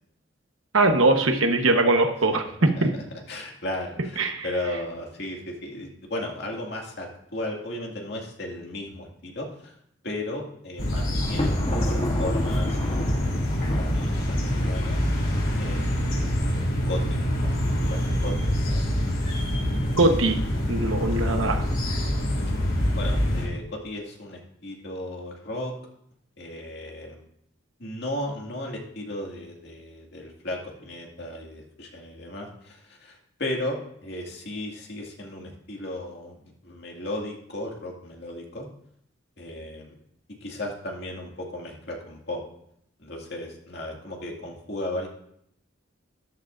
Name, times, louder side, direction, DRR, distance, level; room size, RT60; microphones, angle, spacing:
voice 1, 0.7-2.9 4.2-4.4 20.0-20.4 20.7-21.6, right 2 dB, 85° right, 5 dB, 1.2 m, -21 dB
voice 2, 2.6-9.7 10.0-15.0 15.6-16.2 16.5-18.9 21.1-21.4 23.0-25.7 26.4-27.2 27.8-38.7 39.4-40.0 40.4-42.4 43.0-45.1, left 1 dB, 55° left, 0 dB, 2.2 m, -35 dB
sound 1, 10.8-23.4, equal, 85° left, 3.4 m, -25 dB
Thunder, 11.2-15.3, left 1 dB, 30° left, 1.2 m, -32 dB
13.0 x 11.5 x 2.6 m, 0.72 s
head